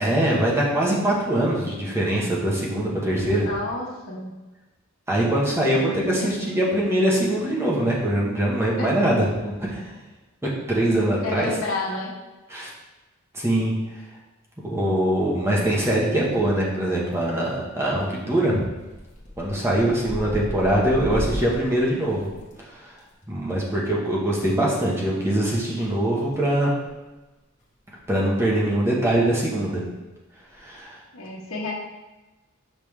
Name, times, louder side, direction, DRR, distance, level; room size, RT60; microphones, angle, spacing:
voice 1, 0.0-3.5 5.1-9.8 10.7-11.5 12.5-12.7 13.3-13.7 14.6-18.5 19.4-22.3 22.7-22.9 23.3-26.7 28.1-29.8 30.6-31.0, right 1 dB, 15° right, -5 dB, 1.1 m, -23 dB
voice 2, 3.4-4.3 5.6-6.6 8.8-8.9 11.2-12.1 31.1-31.7, left 2 dB, 85° left, -3 dB, 1.3 m, -31 dB
sound 1, 16.2-16.8 17.1-17.6 18.0-18.3 18.6-23.0 24.4-24.5 25.8-26.6 26.8-27.1 27.6-27.7 27.9-28.0 28.4-28.6 28.9-29.0 30.5-30.8, equal, 35° left, 1.3 m, -35 dB
5.4 x 5.4 x 3.3 m, 1.1 s
head